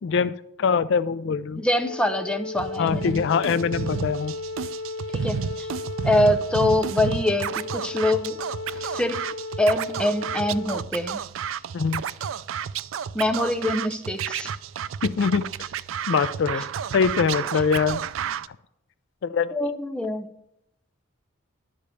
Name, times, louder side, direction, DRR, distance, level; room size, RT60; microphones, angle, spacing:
voice 1, 0.0-1.6 2.8-4.3 11.7-12.0 15.0-15.5 16.1-16.6 16.9-18.0 19.2-19.5, left 6 dB, 60° left, 15 dB, 0.3 m, -23 dB
voice 2, 1.6-3.2 5.1-5.7 6.0-8.4 8.7-9.3 9.6-11.2 13.1-14.5 16.6-16.7 17.5-17.6 19.5-20.3, left 1 dB, 5° left, 7 dB, 0.6 m, -24 dB
Wind instrument woodwind instrument, 1.7-10.9, left 3 dB, 85° left, 0.7 m, -35 dB
Scratching (performance technique), 2.5-18.5, right 7 dB, 70° right, 0.4 m, -31 dB
11.5 x 5.0 x 6.8 m, 0.81 s
head